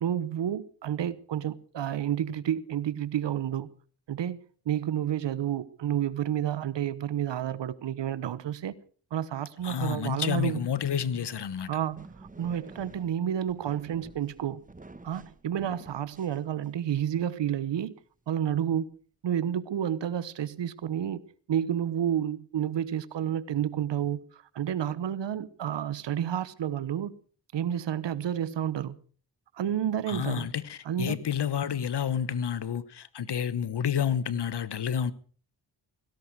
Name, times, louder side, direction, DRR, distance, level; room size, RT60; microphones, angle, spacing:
voice 1, 0.0-3.7 4.1-4.4 4.7-8.7 9.1-10.6 11.7-14.6 15.0-17.9 18.3-19.0 19.2-21.2 21.5-27.1 27.5-29.0 29.5-30.5 30.8-31.2, right 10 dB, 85° right, 1.0 m, -30 dB
voice 2, 9.6-11.7 30.1-35.1, left 8 dB, 70° left, 1.2 m, -30 dB
sound 1, 11.5-17.0, right 2 dB, 20° right, 1.3 m, -50 dB
17.5 x 16.5 x 4.7 m
cardioid pair, 50°, 42 cm